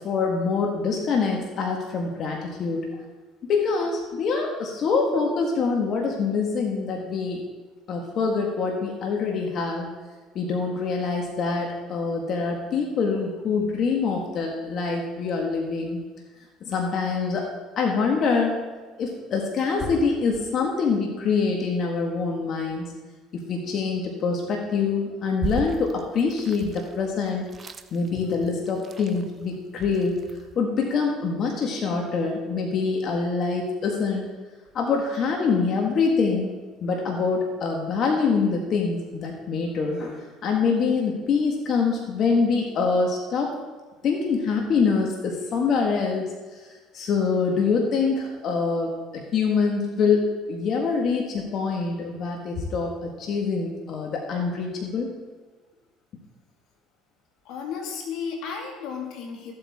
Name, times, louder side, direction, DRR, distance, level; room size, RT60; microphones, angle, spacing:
voice 1, 0.0-2.9 3.4-7.4 7.9-9.9 10.3-16.0 16.6-17.5 17.8-18.6 19.0-22.9 23.3-27.5 27.9-30.2 30.5-34.2 34.7-36.5 36.8-43.5 44.0-55.1, left 4 dB, 55° left, 1 dB, 1.7 m, -25 dB
sound 1, 25.4-30.6, right 4 dB, 35° right, 0.7 m, -37 dB
voice 2, 57.5-59.5, left 6 dB, 75° left, 2 dB, 2.0 m, -33 dB
14.0 x 8.1 x 3.6 m, 1.3 s
supercardioid pair, 90°, 0 cm